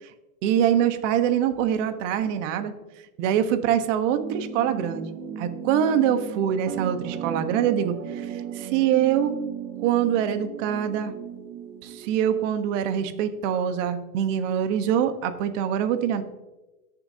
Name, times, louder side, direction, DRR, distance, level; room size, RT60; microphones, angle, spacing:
voice 1, 0.4-2.7 3.2-5.1 5.4-9.4 9.8-11.1 11.8-16.2, right 9 dB, 60° right, 9 dB, 1.3 m, -24 dB
sound 1, 4.1-13.0, right 8 dB, 40° right, 1.3 m, -36 dB
18.5 x 6.9 x 2.8 m, 1.1 s
hypercardioid pair, 120°, 43 cm